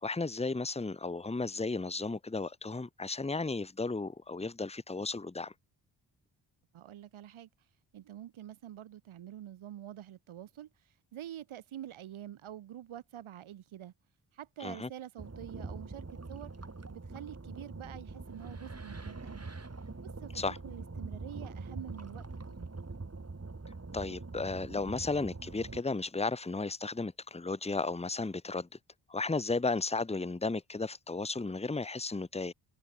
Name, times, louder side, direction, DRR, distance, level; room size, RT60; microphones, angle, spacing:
voice 1, 0.0-5.5 14.6-14.9 20.3-20.6 23.9-28.7 29.1-32.5, left 3 dB, 15° left, 1.1 m, -34 dB
voice 2, 6.7-7.5 7.9-10.7 11.1-13.9 14.3-16.5 16.9-19.5 20.0-22.7, right 11 dB, 80° right, 4.8 m, -47 dB
sound 1, 15.2-25.8, right 3 dB, 30° right, 5.2 m, -44 dB
supercardioid pair, 40°, 47 cm